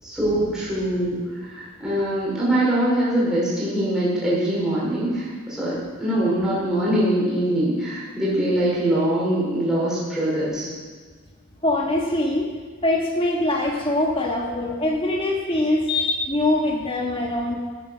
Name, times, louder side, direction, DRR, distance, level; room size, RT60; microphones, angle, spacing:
voice 1, 0.0-10.7, right 1 dB, 5° right, -9 dB, 5.2 m, -23 dB
voice 2, 11.6-12.5 12.8-17.6, left 1 dB, 25° left, 0 dB, 1.6 m, -23 dB
17.0 x 8.8 x 6.3 m, 1.5 s
head